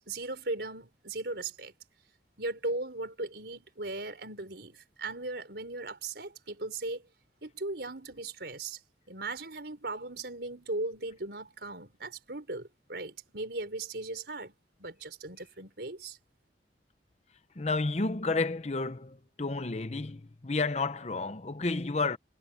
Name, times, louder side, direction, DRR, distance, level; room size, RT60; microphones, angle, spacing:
voice 1, 0.0-1.7 2.4-7.0 7.4-8.8 9.1-14.5 14.8-16.2, right 2 dB, 65° right, 4.7 m, -38 dB
voice 2, 17.5-22.2, left 3 dB, 40° left, 0.8 m, -31 dB
head